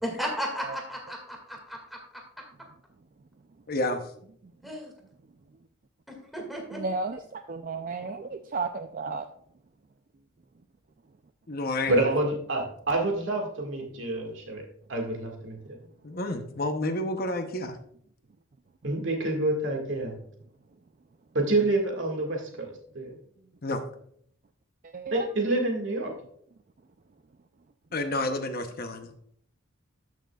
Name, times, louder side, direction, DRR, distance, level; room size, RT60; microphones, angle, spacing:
voice 1, 0.0-2.0 4.6-4.9 6.1-6.8, equal, ahead, 0 dB, 1.9 m, -34 dB
voice 2, 3.7-4.1 11.5-12.0 16.0-17.8 23.6-23.8 27.9-29.1, left 2 dB, 45° left, 7 dB, 0.8 m, -30 dB
voice 3, 6.7-9.3 24.8-25.3, right 4 dB, 40° right, 7 dB, 0.4 m, -33 dB
voice 4, 11.9-14.6 14.9-15.8 18.8-20.2 21.3-23.1 25.1-26.1, right 2 dB, 60° right, 2 dB, 1.9 m, -27 dB
13.5 x 6.4 x 2.3 m, 0.65 s
head